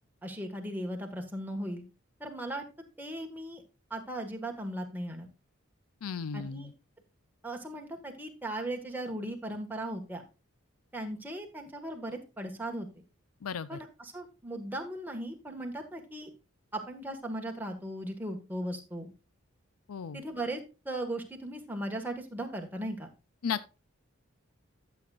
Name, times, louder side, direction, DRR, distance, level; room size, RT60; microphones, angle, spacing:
voice 1, 0.2-1.8 2.2-2.6 3.0-3.6 3.9-5.3 6.3-6.7 7.4-10.2 10.9-13.0 13.7-16.3 16.7-19.1 20.1-23.1, right 1 dB, 10° right, 1.6 m, -37 dB
voice 2, 6.0-6.7 13.4-13.8 19.9-20.2 23.4-23.8, left 6 dB, 90° left, 0.5 m, -35 dB
13.0 x 7.8 x 2.5 m
head